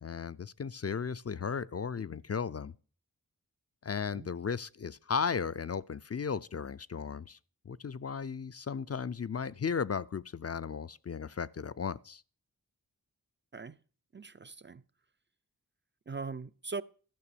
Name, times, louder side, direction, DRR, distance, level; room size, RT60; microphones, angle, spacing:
voice 1, 0.0-2.7 3.8-7.4 7.7-12.2, left 6 dB, 45° left, 0.4 m, -35 dB
voice 2, 14.1-14.8 16.1-16.8, right 4 dB, 30° right, 0.4 m, -40 dB
12.5 x 6.1 x 6.8 m
wide cardioid pair, 40°, 37 cm